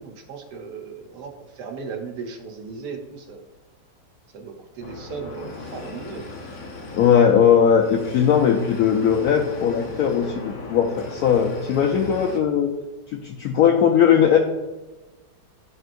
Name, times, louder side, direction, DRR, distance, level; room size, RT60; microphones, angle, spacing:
voice 1, 0.0-3.4 4.3-6.4, right 5 dB, 70° right, 3 dB, 1.4 m, -36 dB
sound 1, 4.8-12.4, left 3 dB, 55° left, 1.4 m, -38 dB
voice 2, 6.9-12.7 13.1-14.4, left 8 dB, 70° left, 2 dB, 1.0 m, -19 dB
12.5 x 4.5 x 2.5 m, 1.1 s
omnidirectional pair, 1.9 m